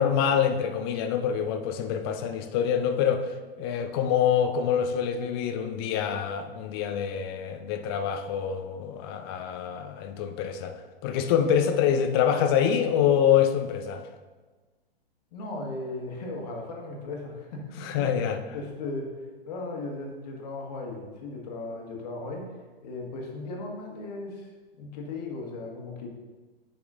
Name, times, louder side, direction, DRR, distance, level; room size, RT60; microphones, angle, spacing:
voice 1, 0.0-14.1 17.8-18.4, left 8 dB, 25° left, 7 dB, 0.5 m, -26 dB
voice 2, 15.3-18.1 18.5-19.1 19.5-22.5 22.8-24.5 24.8-26.1, left 2 dB, 40° left, 0 dB, 1.5 m, -36 dB
10.0 x 5.9 x 2.6 m, 1.3 s
figure-of-eight pair, 110°, 30 cm